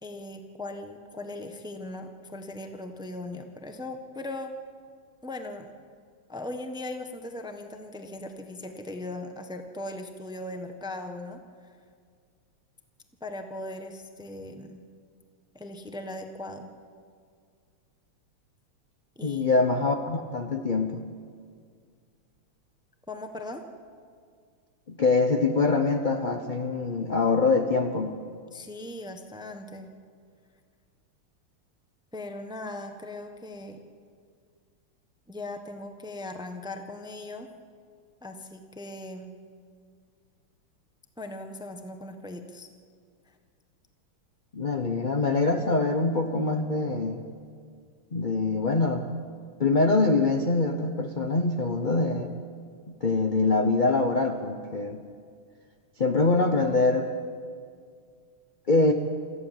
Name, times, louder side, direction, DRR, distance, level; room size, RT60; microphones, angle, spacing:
voice 1, 0.0-4.5 5.2-5.7 6.3-11.4 13.2-14.8 15.5-16.7 19.2-19.6 23.1-23.6 28.5-29.9 32.1-33.8 35.3-37.5 38.2-39.3 41.2-42.7, left 2 dB, 5° right, 6 dB, 0.6 m, -39 dB
voice 2, 19.2-21.0 24.9-28.1 44.5-47.2 48.1-49.0 49.6-52.3 52.9-55.0 56.0-57.1 58.7-58.9, left 3 dB, 55° left, 5 dB, 0.5 m, -24 dB
26.5 x 14.5 x 7.5 m, 2.1 s
omnidirectional pair, 2.4 m